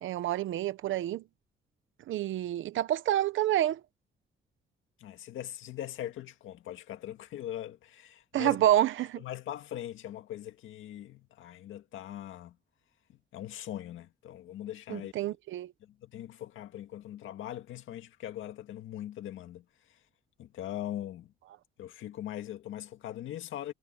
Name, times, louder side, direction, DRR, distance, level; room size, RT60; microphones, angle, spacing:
voice 1, 0.0-1.2 2.1-3.8 8.3-9.2 14.9-15.7, right 13 dB, 80° right, 0.9 m, -28 dB
voice 2, 5.0-8.6 9.2-12.6 13.3-15.1 15.8-20.0 20.4-21.3 21.8-23.7, left 12 dB, 85° left, 2.0 m, -41 dB
cardioid pair, 95°, 20 cm